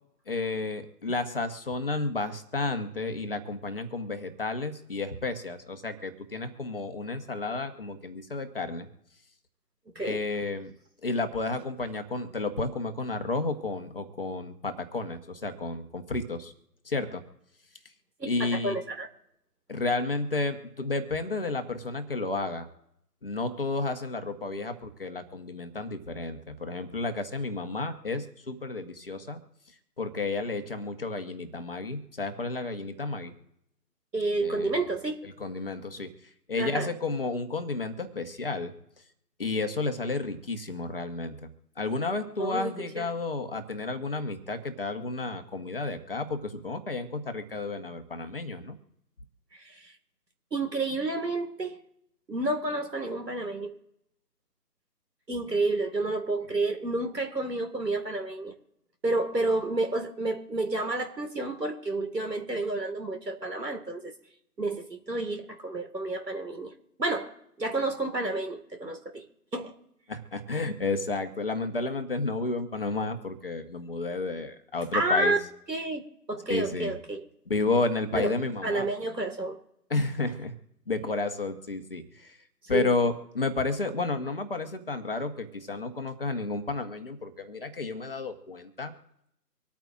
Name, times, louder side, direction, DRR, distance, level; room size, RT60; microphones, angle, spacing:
voice 1, 0.3-8.9 10.0-10.7 11.0-16.5 16.8-17.2 18.3-18.8 19.7-22.7 23.2-29.4 30.0-33.3 34.4-34.7 35.2-36.1 36.5-38.7 39.4-41.5 41.8-48.7 70.1-75.3 76.5-77.0 77.5-78.9 79.9-80.5 80.9-82.4 82.7-88.9, left 3 dB, 35° left, 7 dB, 1.1 m, -31 dB
voice 2, 18.2-19.1 34.1-35.2 36.6-36.9 42.4-43.1 49.5-49.9 50.5-51.8 52.3-53.8 55.3-58.5 59.0-64.1 64.6-69.3 69.5-69.8 74.9-75.4 75.7-77.2 78.1-78.3 78.6-79.6 82.7-82.9, right 2 dB, 90° right, 5 dB, 2.1 m, -30 dB
25.0 x 9.0 x 2.5 m, 0.79 s
figure-of-eight pair, 155°, 48 cm